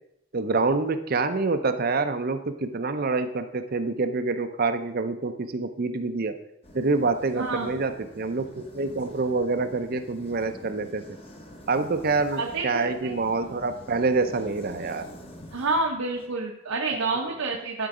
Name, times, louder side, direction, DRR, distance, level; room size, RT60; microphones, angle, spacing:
voice 1, 0.3-6.4 6.7-11.0 11.7-15.1, right 3 dB, 45° right, 9 dB, 0.5 m, -26 dB
sound 1, 6.6-16.3, equal, 25° left, 1.0 m, -46 dB
voice 2, 7.3-7.8 12.3-13.1 15.5-17.9, right 3 dB, 85° right, 0 dB, 1.0 m, -28 dB
11.5 x 4.7 x 4.8 m, 0.82 s
head